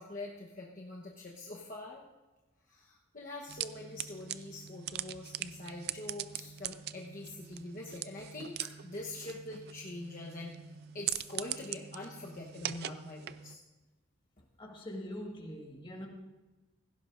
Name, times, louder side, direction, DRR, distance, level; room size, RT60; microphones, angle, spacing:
voice 1, 0.0-2.0 2.7-10.5 10.9-13.6, left 2 dB, 40° left, -3 dB, 1.1 m, -44 dB
sound 1, 3.5-13.6, right 11 dB, 50° right, 0.4 m, -42 dB
voice 2, 14.6-16.1, equal, 25° left, 0 dB, 1.7 m, -43 dB
17.0 x 15.5 x 2.6 m, 1.1 s
head